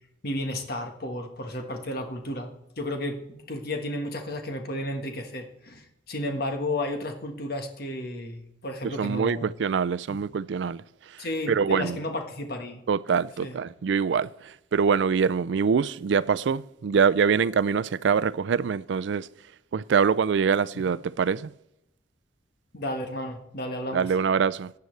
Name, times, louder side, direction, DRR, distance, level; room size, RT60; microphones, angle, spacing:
voice 1, 0.2-2.5 2.8-9.5 10.1-10.2 11.2-12.8 13.4-13.6 22.7-24.1, left 1 dB, 55° left, 1.5 m, -32 dB
voice 2, 9.0-10.8 11.5-12.0 12.9-19.3 19.7-21.5 23.9-24.7, right 6 dB, 70° right, 0.4 m, -24 dB
15.5 x 9.5 x 3.3 m
head